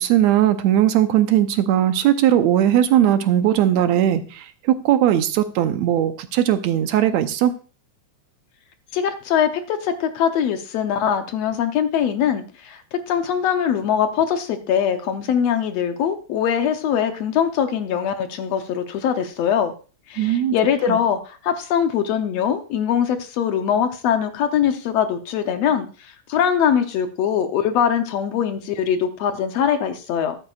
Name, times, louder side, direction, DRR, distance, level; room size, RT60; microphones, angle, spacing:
voice 1, 0.0-7.5 20.2-20.6 20.9-21.0, right 11 dB, 75° right, 9 dB, 1.9 m, -18 dB
voice 2, 8.9-19.7 20.1-30.4, left 8 dB, 70° left, 7 dB, 1.8 m, -22 dB
13.5 x 12.5 x 2.4 m, 0.37 s
omnidirectional pair, 3.5 m